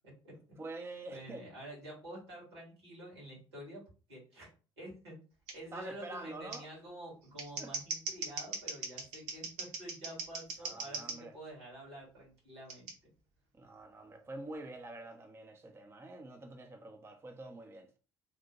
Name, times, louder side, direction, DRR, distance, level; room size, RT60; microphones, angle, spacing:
voice 1, 0.0-0.6 1.1-5.2 5.5-13.1, right 1 dB, 80° right, 1.4 m, -49 dB
voice 2, 0.6-1.4 5.7-6.7 7.6-7.7 10.6-11.4 13.5-18.0, right 2 dB, 20° right, 0.5 m, -46 dB
Scissors, 5.5-5.6 6.5-6.6 7.2-11.2 12.7-12.9, right 4 dB, 60° right, 0.8 m, -40 dB
2.7 x 2.1 x 2.8 m
figure-of-eight pair, 55°, 13 cm